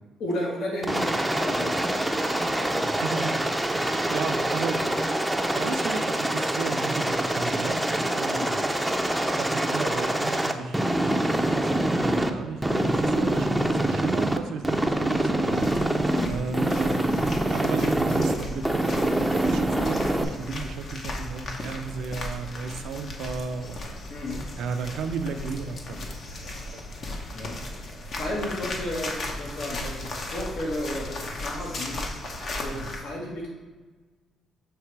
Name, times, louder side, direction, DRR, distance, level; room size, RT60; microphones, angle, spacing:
voice 1, 0.2-3.0 8.0-8.5 16.0-16.4 24.1-24.4 27.3-33.5, left 1 dB, 75° left, -3 dB, 1.3 m, -34 dB
Aircraft, 0.8-12.3 12.6-14.4 14.6-16.3 16.5-18.3 18.6-20.2, right 1 dB, 5° right, 0.5 m, -25 dB
voice 2, 2.4-2.7 3.0-4.8 5.6-8.5 8.9-9.0 9.4-10.8 11.3-15.7 16.3-17.2 17.5-23.8 24.6-26.8 32.7-32.9, right 5 dB, 80° right, 7 dB, 0.5 m, -34 dB
sound 1, 15.5-33.0, left 1 dB, 55° left, 0.9 m, -36 dB
6.8 x 3.2 x 4.6 m, 1.3 s
cardioid pair, 90°, 0 cm